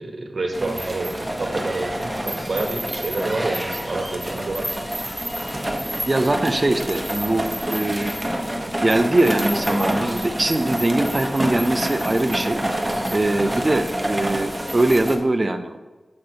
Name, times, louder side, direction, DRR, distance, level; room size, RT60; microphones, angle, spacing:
voice 1, 0.0-4.7, right 2 dB, 65° right, 2 dB, 1.1 m, -28 dB
sound 1, 0.5-15.2, right 1 dB, 15° right, 1.0 m, -27 dB
voice 2, 6.1-8.1 8.4-8.5 8.8-12.6 13.1-15.8, right 2 dB, 35° right, 8 dB, 0.6 m, -22 dB
7.7 x 5.9 x 2.9 m, 1.2 s
cardioid pair, 55°, 0 cm